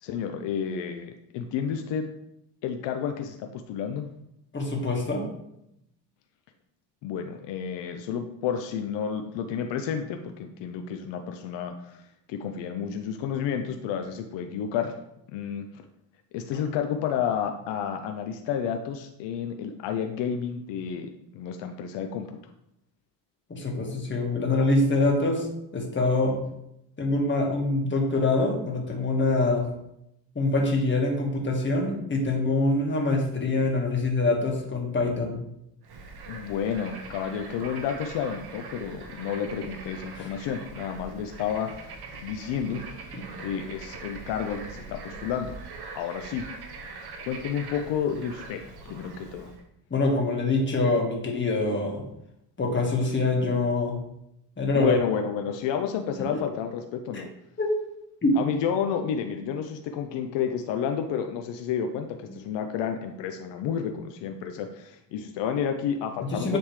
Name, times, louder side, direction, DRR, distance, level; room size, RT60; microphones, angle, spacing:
voice 1, 0.0-2.1 2.6-4.1 7.0-12.0 12.3-14.9 15.3-15.7 16.3-22.3 36.3-42.8 43.4-45.6 45.9-46.5 47.3-49.5 54.7-57.3 58.4-66.6, left 8 dB, 80° left, 5 dB, 0.7 m, -31 dB
voice 2, 4.5-5.2 23.5-25.5 25.7-26.3 27.0-29.7 30.3-35.4 40.2-40.3 49.9-52.0 52.6-54.0 54.6-55.0 57.1-57.2 57.6-57.7 58.2-58.3 66.3-66.6, left 2 dB, 25° left, 0 dB, 1.7 m, -25 dB
Bird / Frog, 35.8-49.6, right 4 dB, 60° right, 1.1 m, -42 dB
10.0 x 3.5 x 3.2 m, 0.81 s
cardioid pair, 105°, 43 cm